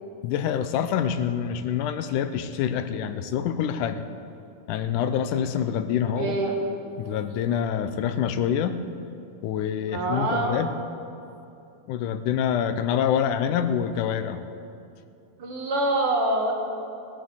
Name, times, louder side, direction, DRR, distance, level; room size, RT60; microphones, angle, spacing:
voice 1, 0.2-4.0 4.7-6.4 7.0-8.8 9.4-10.7 11.9-14.4, left 8 dB, 85° left, 10 dB, 2.2 m, -26 dB
voice 2, 6.2-6.6 9.9-10.6 15.4-16.5, right 2 dB, 50° right, 0 dB, 2.2 m, -25 dB
18.0 x 8.4 x 7.2 m, 2.7 s
omnidirectional pair, 3.6 m